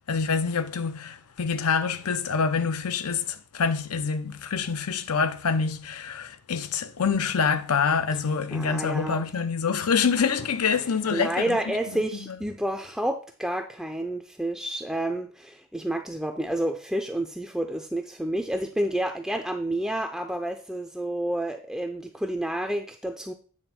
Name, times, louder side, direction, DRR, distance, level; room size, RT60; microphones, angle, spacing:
voice 1, 0.1-12.4, left 5 dB, 85° left, 0.7 m, -26 dB
voice 2, 8.5-9.2 11.1-23.3, right 1 dB, ahead, 0.4 m, -29 dB
9.0 x 3.5 x 5.9 m
head